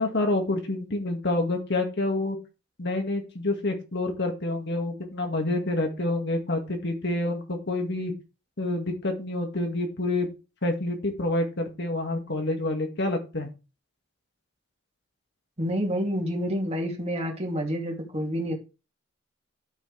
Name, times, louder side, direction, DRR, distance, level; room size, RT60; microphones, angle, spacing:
voice 1, 0.0-2.4 2.8-8.1 8.6-10.3 10.6-13.5, left 2 dB, 60° left, 4 dB, 2.0 m, -28 dB
voice 2, 15.6-18.5, equal, 35° right, 0 dB, 2.7 m, -28 dB
11.5 x 6.5 x 3.3 m, 0.31 s
head